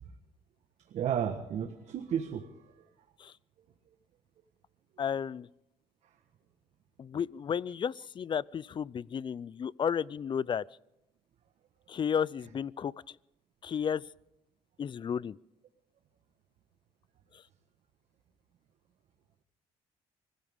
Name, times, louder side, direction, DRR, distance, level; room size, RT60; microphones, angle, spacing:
voice 1, 0.9-2.5, right 8 dB, 70° right, 1.4 m, -32 dB
voice 2, 5.0-5.5 7.0-10.6 11.9-12.9 13.6-14.0 14.8-15.3, left 7 dB, 40° left, 0.5 m, -32 dB
25.0 x 15.5 x 3.7 m
cardioid pair, 90°, 12 cm